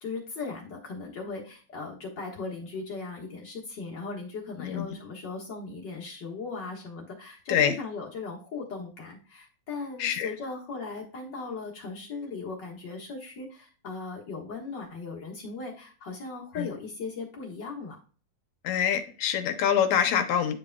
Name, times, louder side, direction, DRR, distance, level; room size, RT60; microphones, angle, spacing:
voice 1, 0.0-18.0, left 4 dB, 45° left, -2 dB, 1.6 m, -38 dB
voice 2, 18.6-20.6, left 9 dB, 75° left, 8 dB, 2.0 m, -25 dB
10.0 x 5.2 x 2.2 m, 0.39 s
omnidirectional pair, 3.6 m